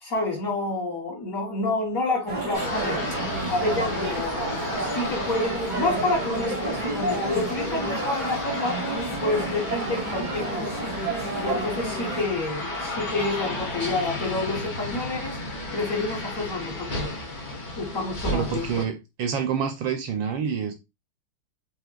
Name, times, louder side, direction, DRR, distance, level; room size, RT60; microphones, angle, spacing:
voice 1, 0.0-3.0 3.5-8.9 9.2-10.9 11.4-15.4 15.7-17.1 17.8-18.8, left 2 dB, 45° left, 1.3 m, -29 dB
sound 1, 2.3-12.2, right 2 dB, 40° right, 0.6 m, -30 dB
sound 2, 2.5-18.8, left 2 dB, 75° left, 0.4 m, -33 dB
voice 2, 18.3-20.7, right 7 dB, 70° right, 1.2 m, -27 dB
5.6 x 3.0 x 2.3 m
omnidirectional pair, 2.4 m